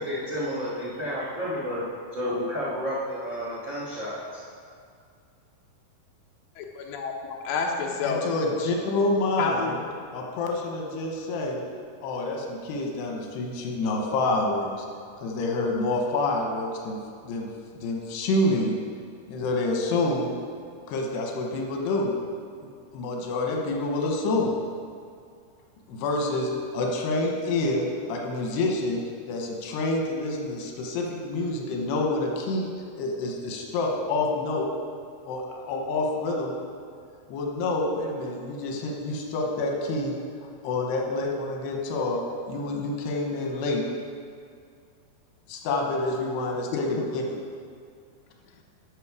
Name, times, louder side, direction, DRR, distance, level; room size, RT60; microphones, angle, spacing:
voice 1, 0.0-1.8 2.1-4.4, equal, 80° right, -7 dB, 1.0 m, -31 dB
voice 2, 6.6-8.2 9.4-9.8 46.7-47.0, left 5 dB, 70° left, 0 dB, 2.5 m, -29 dB
voice 3, 8.0-9.7 10.1-11.6 12.0-14.9 15.2-17.0 17.2-17.5 17.8-18.7 19.3-20.4 20.9-22.1 22.9-24.6 25.9-29.0 29.3-34.7 35.3-36.6 37.3-40.2 40.6-42.2 42.5-43.8 45.5-47.2, left 2 dB, 90° left, 1 dB, 3.1 m, -27 dB
11.5 x 5.9 x 4.7 m, 2.3 s
omnidirectional pair, 4.7 m